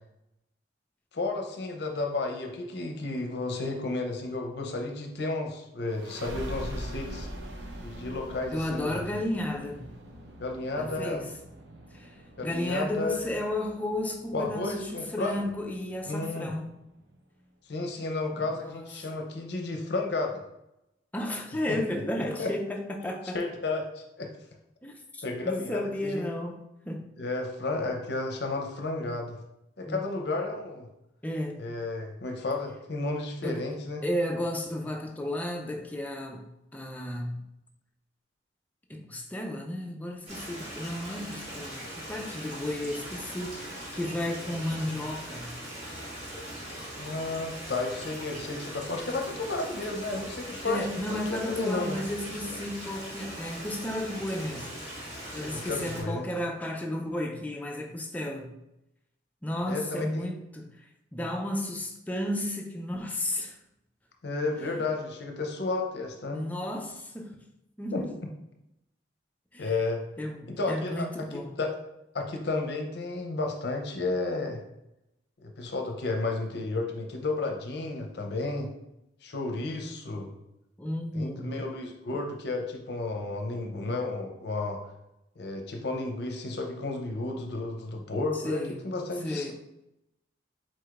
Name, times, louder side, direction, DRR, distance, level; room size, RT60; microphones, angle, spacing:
voice 1, 1.1-7.3 7.8-9.2 10.4-11.3 12.4-13.3 14.3-15.4 16.1-16.5 17.7-20.4 21.7-21.8 22.2-22.5 23.3-24.3 25.2-26.2 27.2-29.4 29.8-30.9 31.6-34.0 44.4-44.6 47.0-50.8 51.1-52.0 55.4-56.3 59.7-60.3 64.2-66.4 67.9-68.0 69.6-70.0 70.5-71.7 72.1-74.6 75.4-78.7 79.2-80.3 81.1-84.8 85.4-89.5, left 3 dB, 60° left, 0.6 m, -32 dB
sound 1, 5.9-17.1, right 1 dB, 65° right, 0.7 m, -43 dB
voice 2, 8.5-9.9 10.8-11.3 11.9-12.1 12.4-16.7 18.3-19.2 21.1-23.4 24.8-26.6 26.8-27.1 29.9-30.0 31.2-31.6 33.4-33.6 34.0-37.4 38.9-45.6 50.6-54.7 55.3-58.5 59.4-60.7 61.1-63.6 64.6-64.7 66.3-67.4 67.8-68.1 69.5-69.7 70.2-71.6 80.8-81.6 88.4-88.8 89.2-89.5, left 1 dB, 10° left, 0.4 m, -33 dB
Stream, 40.3-56.0, equal, 35° right, 1.5 m, -40 dB
4.7 x 4.1 x 2.4 m
head